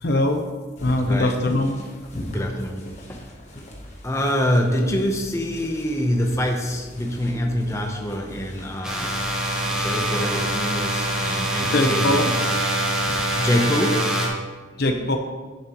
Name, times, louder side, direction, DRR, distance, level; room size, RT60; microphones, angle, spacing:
voice 1, 0.0-0.4 0.8-1.7 11.7-12.3 14.8-15.2, left 1 dB, 55° left, 5 dB, 0.7 m, -21 dB
sound 1, 0.8-13.5, equal, 35° left, 1.2 m, -41 dB
voice 2, 2.3-3.4 4.0-9.2 9.6-12.2 13.4-14.1, equal, 15° left, 2 dB, 0.8 m, -25 dB
sound 2, 8.8-14.3, right 1 dB, 5° right, 1.2 m, -24 dB
10.5 x 7.3 x 3.1 m, 1.4 s
head